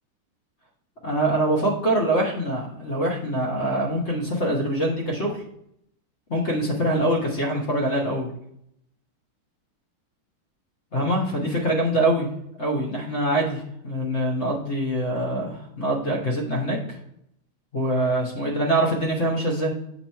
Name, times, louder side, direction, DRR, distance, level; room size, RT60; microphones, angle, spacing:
voice 1, 1.0-5.4 6.3-8.3 10.9-12.3 12.6-17.0 17.7-19.7, right 1 dB, 40° left, -2 dB, 1.0 m, -24 dB
7.1 x 3.0 x 5.5 m, 0.73 s
omnidirectional pair, 2.3 m